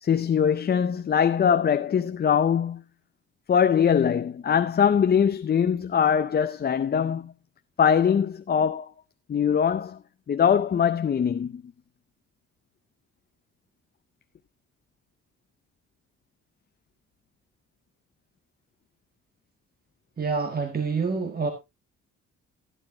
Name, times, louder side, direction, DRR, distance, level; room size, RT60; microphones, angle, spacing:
voice 1, 0.0-2.8 3.5-7.3 7.8-8.9 9.3-10.0 10.3-11.6, left 7 dB, 35° left, 0.6 m, -22 dB
voice 2, 20.2-21.5, right 4 dB, 30° right, 1.8 m, -27 dB
13.5 x 11.0 x 2.8 m
cardioid pair, 90°, 30 cm